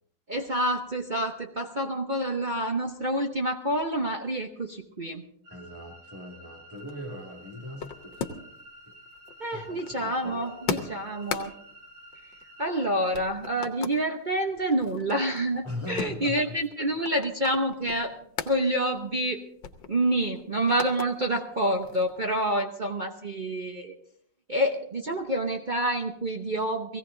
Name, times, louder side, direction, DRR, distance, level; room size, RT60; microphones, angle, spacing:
voice 1, 0.3-5.2 9.4-11.5 12.6-18.1 18.4-19.4 19.9-23.9 24.5-27.0, right 1 dB, 55° right, 3 dB, 0.5 m, -28 dB
sound 1, 5.4-12.9, equal, 75° right, 5.1 m, -51 dB
voice 2, 5.5-8.2 8.9-9.0 9.5-10.9 15.6-16.6, left 1 dB, 5° right, 3 dB, 2.0 m, -40 dB
sound 2, 6.8-8.7 8.9-12.8 13.1-14.0 14.5-18.6 19.0-19.1 19.3-21.1 21.5-22.3, left 6 dB, 65° left, 1.6 m, -38 dB
18.0 x 16.0 x 3.8 m, 0.65 s
omnidirectional pair, 2.3 m